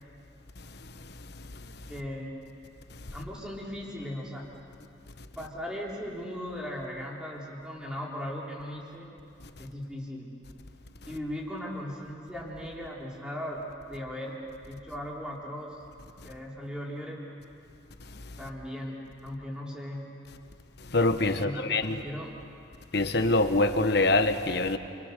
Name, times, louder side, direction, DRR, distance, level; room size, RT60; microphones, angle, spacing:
voice 1, 1.9-2.4 3.1-4.6 5.4-9.1 9.6-10.3 11.1-13.6 13.9-14.4 14.7-15.8 16.2-17.2 18.4-20.1 21.4-22.3, equal, 5° right, 4.1 m, -38 dB
voice 2, 20.9-22.0 22.9-24.8, left 2 dB, 60° left, 1.3 m, -24 dB
28.5 x 25.0 x 6.8 m
head